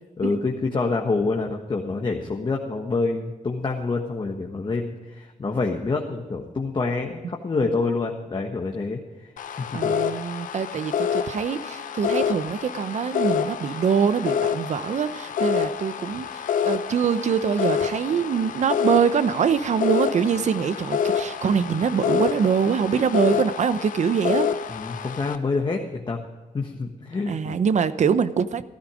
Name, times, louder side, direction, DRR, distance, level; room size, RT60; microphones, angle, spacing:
voice 1, 0.2-10.0 24.7-26.2 26.5-27.6, left 3 dB, 35° left, 1 dB, 1.5 m, -27 dB
sound 1, 9.4-25.4, left 7 dB, 85° left, 0.9 m, -27 dB
voice 2, 9.7-24.5 27.3-28.6, right 7 dB, 60° right, 13 dB, 0.8 m, -24 dB
14.5 x 12.5 x 5.0 m, 1.2 s
cardioid pair, 100°, 13 cm